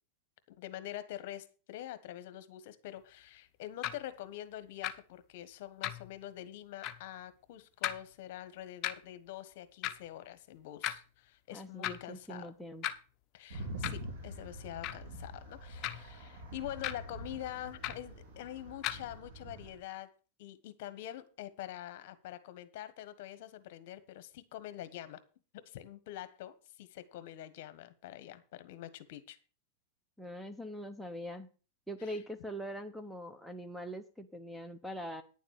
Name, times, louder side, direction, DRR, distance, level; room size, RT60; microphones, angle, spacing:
voice 1, 0.5-12.5 13.3-20.1 20.4-25.2 25.5-29.4 32.0-32.2, left 13 dB, 55° left, 1.4 m, -45 dB
sound 1, 3.8-4.0 4.8-4.9 5.8-6.1 6.8-7.0 7.8-8.0 8.8-8.9 9.8-9.9 10.8-11.0 11.8-12.0 12.8-12.9 13.8-14.1 14.8-15.0 15.8-16.1 16.8-16.9 17.8-18.1 18.8-19.0, left 12 dB, 35° left, 0.9 m, -36 dB
voice 2, 11.5-12.9 30.2-31.5 31.9-35.2, equal, ahead, 0.8 m, -42 dB
sound 2, 13.5-19.8, right 1 dB, 70° right, 3.6 m, -45 dB
10.0 x 7.2 x 6.6 m
supercardioid pair, 150°, 0 cm